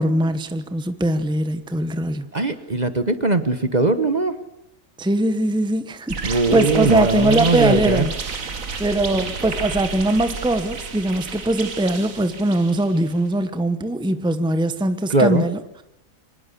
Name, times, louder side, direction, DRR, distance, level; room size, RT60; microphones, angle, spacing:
voice 1, 0.0-2.3 5.0-8.1 8.4-8.5 8.8-15.6, right 1 dB, 5° right, 1.0 m, -21 dB
voice 2, 2.3-4.4 6.2-8.0 15.1-15.5, right 3 dB, 35° right, 1.2 m, -20 dB
sound 1, 6.1-13.1, right 4 dB, 80° right, 2.1 m, -31 dB
25.0 x 20.5 x 7.0 m
omnidirectional pair, 1.4 m